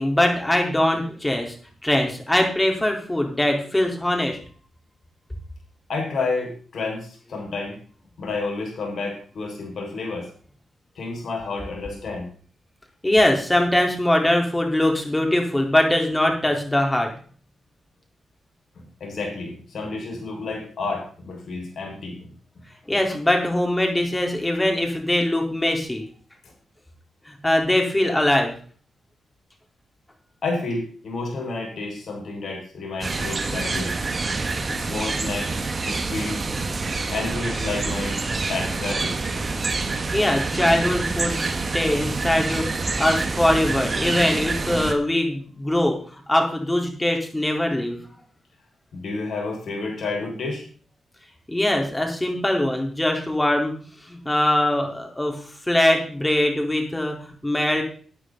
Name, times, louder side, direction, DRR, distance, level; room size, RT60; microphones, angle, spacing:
voice 1, 0.0-1.6 1.8-4.4 13.0-17.1 22.9-26.0 27.3-28.6 40.1-41.5 41.7-46.0 46.3-48.0 51.5-53.8 54.1-57.8, left 1 dB, 15° left, 2 dB, 4.3 m, -22 dB
voice 2, 5.9-7.8 8.2-10.3 11.0-12.3 19.0-22.3 30.4-33.9 34.7-35.6 35.8-36.4 37.1-38.2 38.5-39.1 48.9-50.6, left 3 dB, 65° left, 1 dB, 5.9 m, -30 dB
sound 1, 33.0-44.9, right 3 dB, 45° right, 1.9 m, -27 dB
13.5 x 9.4 x 4.2 m, 0.43 s
supercardioid pair, 50°, 0 cm